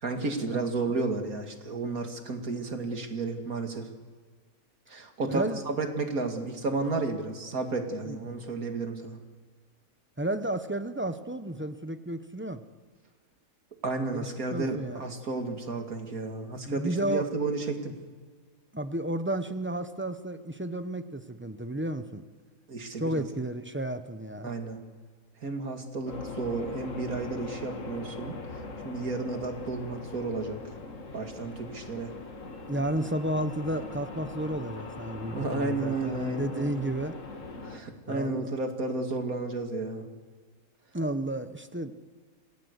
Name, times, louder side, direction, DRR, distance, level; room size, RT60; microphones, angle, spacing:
voice 1, 0.0-3.9 4.9-9.2 13.8-18.0 22.7-23.3 24.4-24.8 25.4-30.7 31.1-32.1 35.3-36.9 37.6-40.1, right 3 dB, 80° right, 4 dB, 2.7 m, -32 dB
voice 2, 5.3-5.6 8.1-8.2 10.2-12.6 14.5-15.0 16.7-17.2 18.7-22.2 23.0-24.5 32.7-37.2 38.1-38.5 40.9-41.9, right 1 dB, 10° right, 9 dB, 0.8 m, -32 dB
sound 1, 26.1-37.8, left 3 dB, 60° left, 2.2 m, -41 dB
28.0 x 18.0 x 8.2 m, 1.5 s
omnidirectional pair, 1.5 m